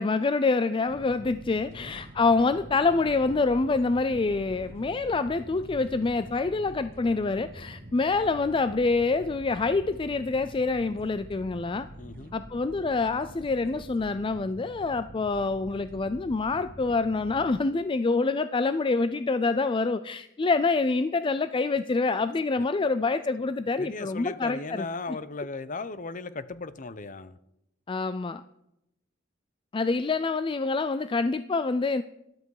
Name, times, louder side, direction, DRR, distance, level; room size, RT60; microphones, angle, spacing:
voice 1, 0.0-11.9 12.3-24.8 27.9-28.4 29.7-32.0, left 3 dB, 25° left, 12 dB, 0.4 m, -26 dB
sound 1, 0.9-17.6, equal, 50° right, 2.0 m, -46 dB
voice 2, 12.0-12.3 22.6-22.7 23.8-27.4, left 3 dB, 40° left, 15 dB, 0.8 m, -37 dB
13.5 x 12.0 x 4.8 m, 0.83 s
head